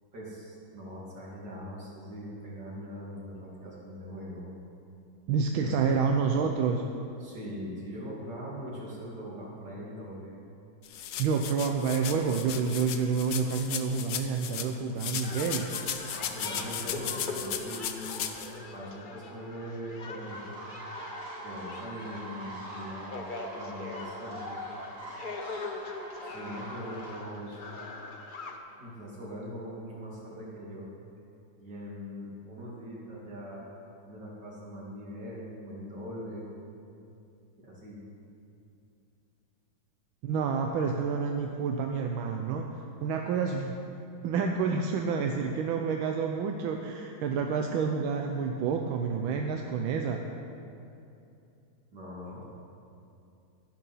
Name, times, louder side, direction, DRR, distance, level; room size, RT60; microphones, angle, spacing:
voice 1, 0.1-4.5 5.6-5.7 7.2-10.3 16.1-18.2 18.6-20.4 21.4-24.6 26.2-27.6 28.8-30.9 31.6-33.7 34.0-36.4 37.6-38.0 51.9-52.5, equal, 55° right, -5 dB, 3.5 m, -41 dB
voice 2, 5.3-6.8 11.2-15.7 40.2-43.8 44.2-50.2, right 5 dB, 85° right, 3 dB, 1.5 m, -29 dB
sound 1, 10.8-14.7 15.0-18.5, left 9 dB, 85° left, 1.6 m, -36 dB
sound 2, 15.2-28.6, left 3 dB, 50° left, 0.6 m, -42 dB
sound 3, 20.2-27.2, right 2 dB, 30° right, 1.8 m, -44 dB
12.0 x 11.0 x 5.6 m, 2.7 s
omnidirectional pair, 2.2 m